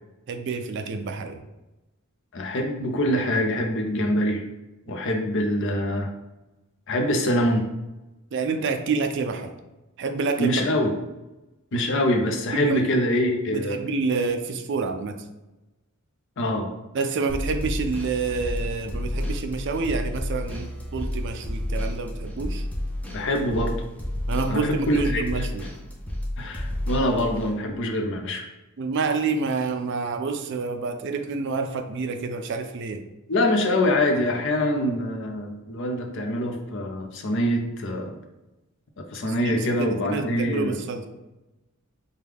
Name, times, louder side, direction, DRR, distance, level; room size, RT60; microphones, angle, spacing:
voice 1, 0.3-1.4 8.3-9.5 10.0-10.5 12.5-12.9 13.5-15.2 16.9-22.7 24.3-25.6 28.8-33.0 39.2-41.1, right 4 dB, 55° right, 6 dB, 0.4 m, -28 dB
voice 2, 2.3-4.4 4.9-6.1 6.9-7.7 10.4-10.9 11.7-13.8 16.4-16.7 23.1-23.8 24.5-25.4 26.4-28.5 33.3-38.1 39.1-40.8, left 1 dB, 55° left, 4 dB, 0.6 m, -24 dB
sound 1, 17.3-27.5, left 1 dB, 5° left, 0.5 m, -31 dB
4.9 x 2.2 x 3.5 m, 1.0 s
head